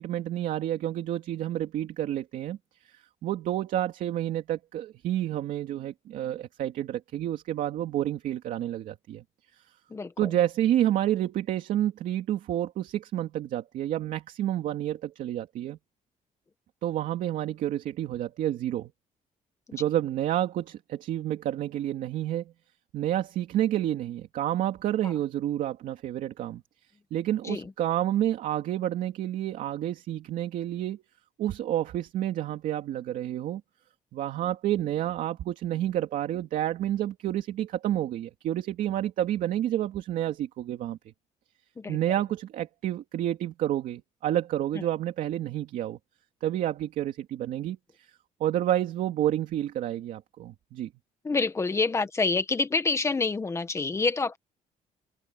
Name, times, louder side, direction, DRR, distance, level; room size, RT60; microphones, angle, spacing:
voice 1, 0.0-2.6 2.8-9.2 9.5-9.6 10.2-15.8 16.8-18.9 19.7-22.5 22.9-26.6 27.1-31.0 31.4-33.6 34.1-41.0 41.9-46.0 46.4-48.1 48.4-50.9, right 12 dB, 80° right, 2.6 m, -29 dB
voice 2, 9.9-10.3 25.0-25.1 27.4-27.7 41.8-42.0 44.7-44.8 51.2-54.4, left 4 dB, 20° left, 1.7 m, -27 dB
cardioid pair, 140°, 14 cm